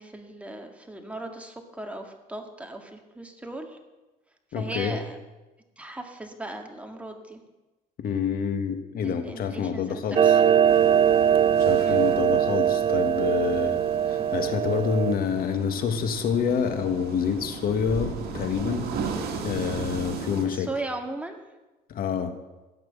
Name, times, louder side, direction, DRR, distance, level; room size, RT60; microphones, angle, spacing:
voice 1, 0.0-3.8 4.5-5.2 5.8-7.4 9.0-10.6 11.8-12.3 17.1-17.2 20.5-21.4, right 2 dB, 10° right, 3 dB, 1.9 m, -38 dB
voice 2, 4.5-5.0 8.0-10.4 11.6-19.0 19.4-20.7 21.9-22.3, left 7 dB, 60° left, 7 dB, 1.7 m, -27 dB
Clock, 10.2-15.1, right 9 dB, 35° right, 0.5 m, -21 dB
sound 1, 10.7-20.5, right 5 dB, 70° right, 2.2 m, -36 dB
15.0 x 6.1 x 8.9 m, 1.1 s
cardioid pair, 110°, 17 cm